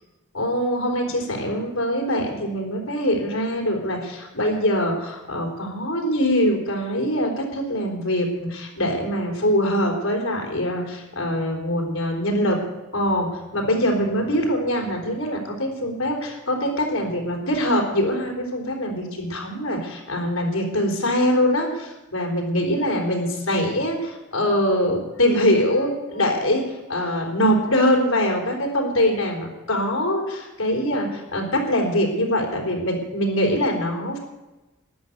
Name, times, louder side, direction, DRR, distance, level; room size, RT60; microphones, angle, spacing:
voice 1, 0.3-12.6 12.9-34.2, equal, 75° left, 1 dB, 4.2 m, -23 dB
13.5 x 11.0 x 8.0 m, 1.1 s
head